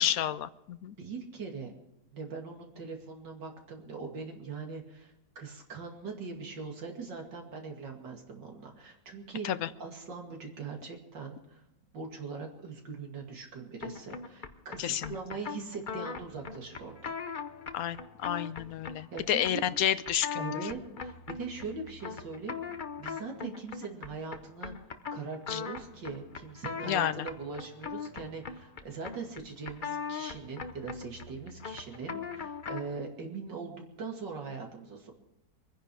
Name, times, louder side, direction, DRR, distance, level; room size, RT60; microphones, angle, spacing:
voice 1, 0.0-0.9 9.4-9.7 14.8-15.1 17.7-20.4 25.5-25.6 26.8-27.3, left 10 dB, 65° left, 14 dB, 1.0 m, -30 dB
voice 2, 1.0-1.7 2.1-9.5 9.8-11.6 11.9-17.1 19.1-19.6 20.4-22.6 23.0-24.7 25.1-35.1, right 4 dB, 80° right, 1 dB, 3.1 m, -41 dB
sound 1, 13.8-33.0, left 6 dB, 40° left, 0.7 m, -40 dB
24.0 x 10.0 x 4.8 m, 0.91 s
omnidirectional pair, 1.9 m